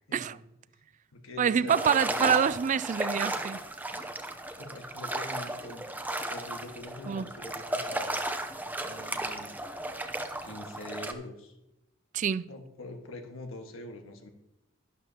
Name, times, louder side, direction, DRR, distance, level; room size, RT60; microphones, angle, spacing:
voice 1, 0.1-0.5 1.1-2.3 4.5-8.1 8.8-9.6 10.4-11.6 12.5-14.3, left 2 dB, 90° left, 1.6 m, -44 dB
voice 2, 1.4-3.6 7.1-7.3 12.1-12.4, right 7 dB, 40° right, 0.3 m, -26 dB
sound 1, 1.7-11.1, right 1 dB, 10° right, 0.7 m, -35 dB
11.5 x 11.5 x 2.9 m
head